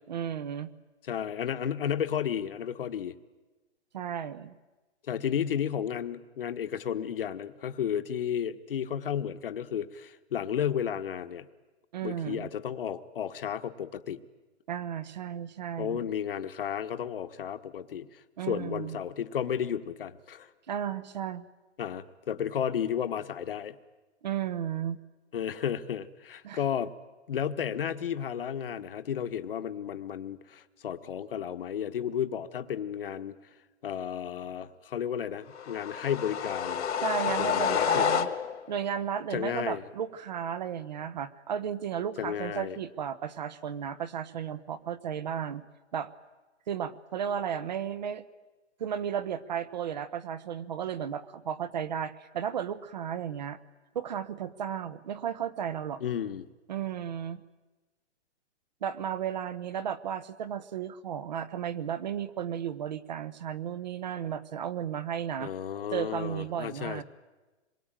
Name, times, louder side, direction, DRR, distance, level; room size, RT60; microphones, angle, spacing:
voice 1, 0.1-0.7 3.9-4.6 11.9-12.5 14.7-16.1 18.4-19.0 20.7-21.5 24.2-25.0 26.4-26.6 37.0-38.3 38.7-45.6 45.9-46.1 46.7-48.2 48.8-53.6 53.9-56.0 56.7-57.4 58.8-65.5 65.9-67.0, right 8 dB, 35° right, 16 dB, 1.0 m, -34 dB
voice 2, 1.0-3.1 5.1-11.5 12.0-14.2 15.8-18.2 18.5-20.5 21.8-23.7 25.3-26.9 27.3-33.4 33.8-36.9 37.4-38.1 39.3-39.8 42.2-42.8 56.0-56.5 65.4-67.0, left 9 dB, 50° left, 9 dB, 1.4 m, -33 dB
sound 1, 35.5-38.7, left 7 dB, 65° left, 1.9 m, -29 dB
26.5 x 22.5 x 9.0 m, 1.2 s
hypercardioid pair, 175°, 36 cm